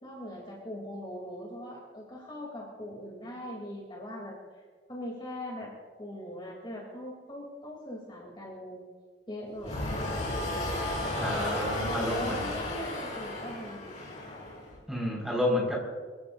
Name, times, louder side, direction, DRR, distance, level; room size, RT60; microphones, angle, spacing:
voice 1, 0.0-4.6 4.9-5.7 6.0-8.8 9.3-9.9 11.8-13.9, left 1 dB, 25° left, -2 dB, 3.2 m, -41 dB
sound 1, 9.6-14.8, left 1 dB, 40° left, 6.1 m, -33 dB
voice 2, 11.2-12.4 14.9-15.8, left 1 dB, ahead, -3 dB, 5.2 m, -30 dB
25.5 x 16.0 x 2.7 m, 1.5 s
head